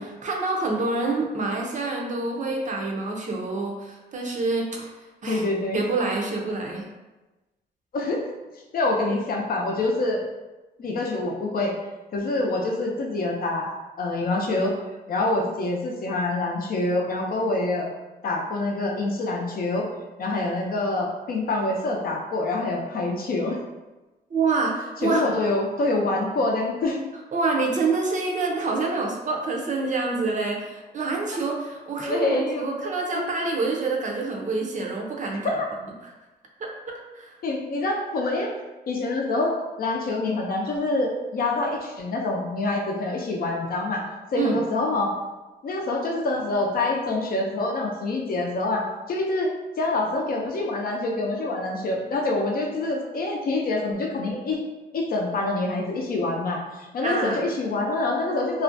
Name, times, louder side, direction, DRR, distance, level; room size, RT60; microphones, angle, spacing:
voice 1, 0.0-4.9 5.2-5.4 5.7-6.9 24.3-25.3 27.3-35.6 36.6-37.3 44.3-44.6 57.0-57.4, right 3 dB, 45° right, 0 dB, 0.5 m, -27 dB
voice 2, 5.3-5.8 7.9-8.2 8.7-10.2 10.8-11.7 12.1-14.7 15.1-17.9 18.2-19.9 20.2-23.6 25.0-27.0 32.0-33.2 35.6-35.7 37.4-38.5 38.9-45.1 45.6-49.5 49.8-54.6 54.9-56.6 56.9-58.6, left 2 dB, 55° left, 0 dB, 0.5 m, -26 dB
2.4 x 2.1 x 2.5 m, 1.1 s
cardioid pair, 95°, 18 cm